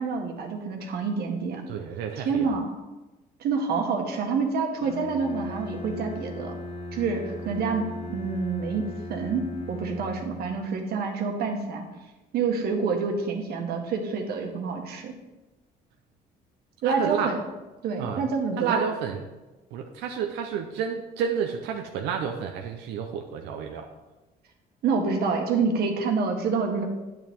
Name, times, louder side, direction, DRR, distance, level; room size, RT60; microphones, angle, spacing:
voice 1, 0.0-1.6 2.1-2.7 3.4-6.6 6.9-11.8 12.3-15.1 16.8-17.4 17.8-18.8 24.8-26.9, right 5 dB, 70° right, 3 dB, 1.7 m, -27 dB
voice 2, 1.7-2.5 16.8-17.3 18.0-18.2 18.6-19.2 19.7-23.9, right 7 dB, 90° right, 3 dB, 0.8 m, -30 dB
Bowed string instrument, 4.8-10.7, left 1 dB, 35° left, 1.4 m, -38 dB
8.9 x 8.8 x 3.7 m, 1.1 s
cardioid pair, 110°, 17 cm